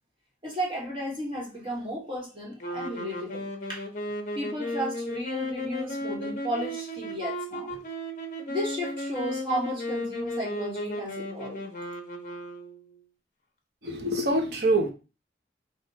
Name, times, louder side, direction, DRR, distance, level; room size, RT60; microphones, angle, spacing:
voice 1, 0.4-3.8 4.3-7.8 8.5-11.6, equal, 30° right, 1.6 m, -34 dB
sound 1, 2.6-13.0, left 1 dB, 45° left, 0.8 m, -34 dB
voice 2, 13.8-14.9, right 1 dB, 70° right, 1.0 m, -25 dB
3.7 x 2.6 x 4.1 m
head